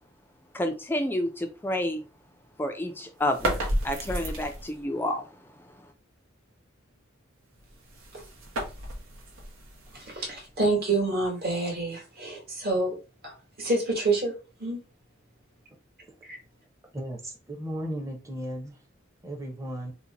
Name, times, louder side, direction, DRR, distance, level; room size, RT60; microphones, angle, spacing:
voice 1, 0.5-2.0 2.6-3.6 3.8-5.3, left 1 dB, 10° left, 6 dB, 0.3 m, -29 dB
sound 1, 3.2-4.8 7.6-10.5, right 1 dB, 80° right, 0.8 m, -33 dB
voice 2, 9.9-12.9 13.2-14.3 14.6-14.8 16.2-16.4, right 2 dB, 50° right, -1 dB, 1.4 m, -28 dB
voice 3, 16.9-18.8 19.2-19.9, equal, 15° right, 1 dB, 0.8 m, -35 dB
2.9 x 2.1 x 3.8 m, 0.33 s
head